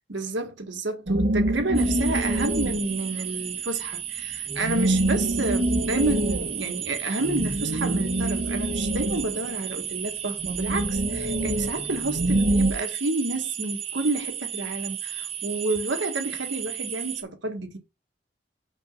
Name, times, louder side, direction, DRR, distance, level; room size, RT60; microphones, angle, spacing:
voice 1, 0.1-17.8, right 2 dB, 85° right, 1.6 m, -29 dB
sound 1, 1.1-3.1 4.5-9.8 10.4-12.7, right 1 dB, 55° right, 1.2 m, -26 dB
sound 2, 1.7-17.2, right 10 dB, 35° right, 0.7 m, -34 dB
5.5 x 4.5 x 5.5 m
head